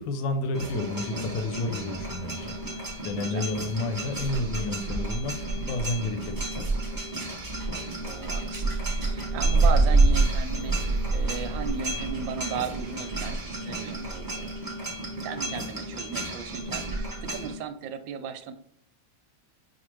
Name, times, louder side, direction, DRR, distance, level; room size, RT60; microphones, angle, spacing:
voice 1, 0.0-6.6, left 2 dB, 80° left, 6 dB, 1.4 m, -31 dB
sound 1, 0.5-17.5, right 2 dB, 20° right, 0.6 m, -28 dB
voice 2, 8.0-8.6 9.0-14.3 15.2-18.5, right 8 dB, 75° right, 8 dB, 1.2 m, -36 dB
5.9 x 2.4 x 3.1 m, 0.70 s
omnidirectional pair, 2.2 m